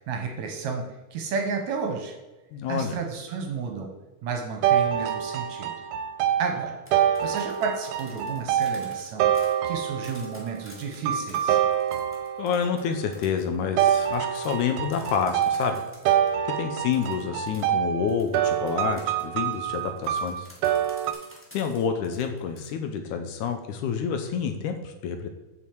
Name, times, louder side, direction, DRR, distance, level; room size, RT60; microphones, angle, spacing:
voice 1, 0.0-2.2 2.7-3.9 4.2-5.7 6.4-9.3 9.6-11.6, right 5 dB, 70° right, 4 dB, 2.0 m, -32 dB
voice 2, 2.5-3.0 12.4-15.8 16.6-20.5 21.5-25.3, left 7 dB, 75° left, 6 dB, 2.0 m, -28 dB
sound 1, 4.6-10.4 11.1-12.7 13.8-21.1, right 10 dB, 85° right, 2.2 m, -26 dB
sound 2, 6.7-16.3 16.9-22.7, equal, 15° left, 0.4 m, -51 dB
8.3 x 6.9 x 4.6 m, 1.1 s
omnidirectional pair, 3.8 m